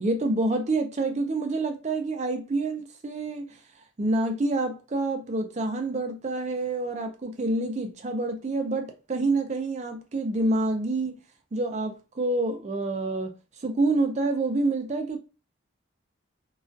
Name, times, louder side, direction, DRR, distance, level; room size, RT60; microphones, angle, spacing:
voice 1, 0.0-3.6 4.0-11.2 11.5-13.3 13.6-15.2, right 2 dB, 35° right, 0.4 m, -27 dB
2.2 x 2.2 x 2.5 m
head